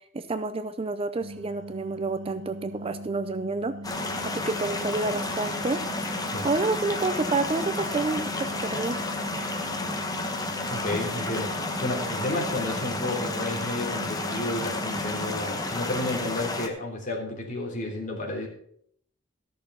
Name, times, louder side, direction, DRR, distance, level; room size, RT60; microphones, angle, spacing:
voice 1, 0.1-3.7 4.2-5.8 6.4-9.0, right 3 dB, 30° right, 11 dB, 0.5 m, -29 dB
sound 1, 1.2-15.3, equal, 65° right, 0.7 m, -40 dB
sound 2, 3.8-16.7, left 2 dB, 20° left, 1.1 m, -31 dB
voice 2, 10.7-18.5, left 2 dB, 40° left, -1 dB, 3.3 m, -31 dB
14.0 x 6.7 x 5.6 m, 0.66 s
head